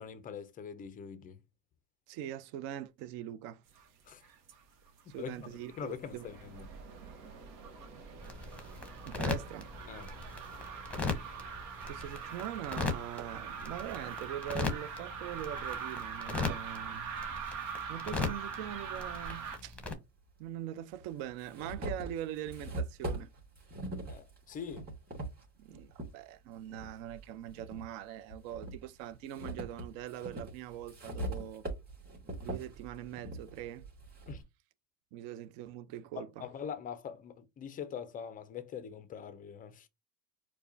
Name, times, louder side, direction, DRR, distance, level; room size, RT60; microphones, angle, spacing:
voice 1, 0.0-1.4 4.1-4.2 5.2-6.7 9.9-10.1 24.1-24.9 34.3-34.4 36.2-39.9, left 7 dB, 20° left, 0.4 m, -43 dB
voice 2, 2.1-3.6 5.1-6.3 9.1-9.7 11.8-17.1 17.9-19.8 20.4-23.3 25.6-31.6 32.4-33.9 35.1-36.5, right 11 dB, 55° right, 0.6 m, -42 dB
sound 1, 3.7-4.6 4.9-19.6, right 6 dB, 75° right, 1.1 m, -43 dB
sound 2, 8.2-19.9, left 3 dB, 5° left, 0.8 m, -39 dB
sound 3, 19.2-19.3 20.4-20.5 21.0-26.1 26.7-27.8 28.3-34.4, right 1 dB, 20° right, 1.8 m, -41 dB
4.6 x 2.2 x 2.6 m
supercardioid pair, 110°, 49 cm